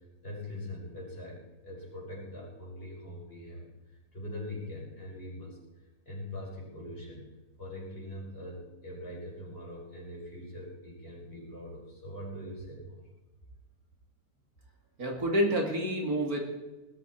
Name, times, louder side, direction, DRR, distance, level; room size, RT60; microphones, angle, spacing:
voice 1, 0.2-5.6 6.1-7.3 7.6-13.0, left 1 dB, 35° left, -4 dB, 5.6 m, -42 dB
voice 2, 15.0-16.4, equal, 65° right, 1 dB, 2.9 m, -28 dB
20.0 x 13.0 x 4.4 m, 1.1 s
omnidirectional pair, 1.7 m